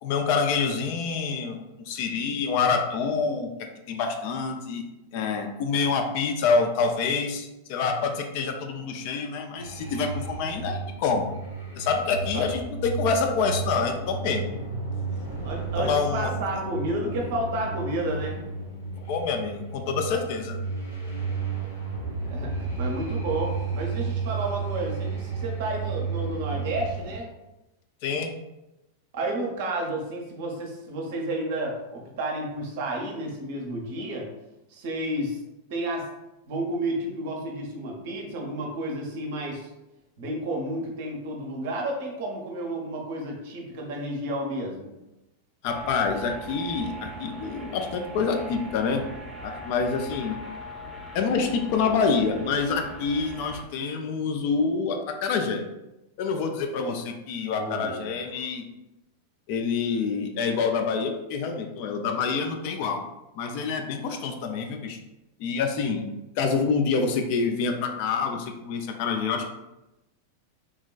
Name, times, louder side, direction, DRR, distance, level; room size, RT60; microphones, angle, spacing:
voice 1, 0.0-3.5 3.9-4.8 5.1-11.3 11.8-14.5 15.8-16.3 19.0-20.6 28.0-28.3 45.6-49.0 49.4-50.4 51.1-55.6 56.2-58.6 59.5-63.0 63.3-65.0 65.4-66.1 66.4-69.5, left 5 dB, 45° left, 4 dB, 0.3 m, -27 dB
sound 1, 9.6-27.2, right 4 dB, 70° left, 0.7 m, -32 dB
voice 2, 15.4-18.4 22.2-27.3 29.1-34.3 34.7-35.4 35.7-36.1 36.5-39.7 40.2-44.9 57.5-58.0, right 1 dB, 50° right, 0 dB, 0.6 m, -31 dB
sound 2, 45.6-53.6, right 1 dB, 5° right, 0.7 m, -40 dB
3.3 x 2.2 x 2.3 m, 0.96 s
figure-of-eight pair, 90°, 0 cm